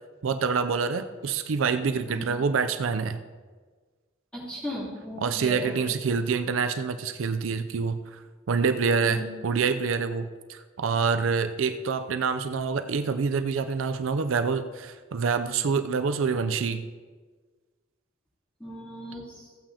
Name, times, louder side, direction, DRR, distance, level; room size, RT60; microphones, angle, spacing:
voice 1, 0.2-3.2 5.2-8.2 8.5-16.8, right 5 dB, 80° right, 9 dB, 0.5 m, -26 dB
voice 2, 4.3-5.7 9.0-9.3 18.6-19.5, equal, 5° left, -7 dB, 3.1 m, -36 dB
15.5 x 8.8 x 2.8 m, 1.5 s
head